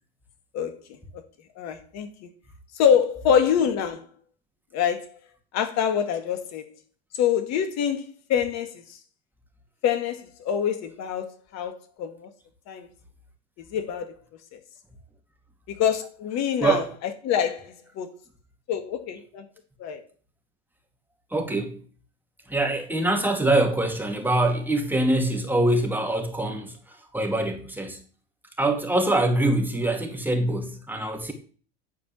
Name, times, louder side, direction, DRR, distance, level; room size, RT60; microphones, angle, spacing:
voice 1, 1.6-2.3 2.7-4.1 4.7-5.1 5.5-6.7 7.2-8.8 9.8-12.3 12.7-12.9 13.6-14.1 15.7-16.8 17.2-18.1 18.7-19.5 19.8-20.0, left 8 dB, 55° left, 2.0 m, -25 dB
voice 2, 21.3-21.8 22.5-28.0 28.6-31.3, right 1 dB, 5° right, 2.3 m, -24 dB
9.8 x 4.8 x 7.4 m
hypercardioid pair, 80°, 32 cm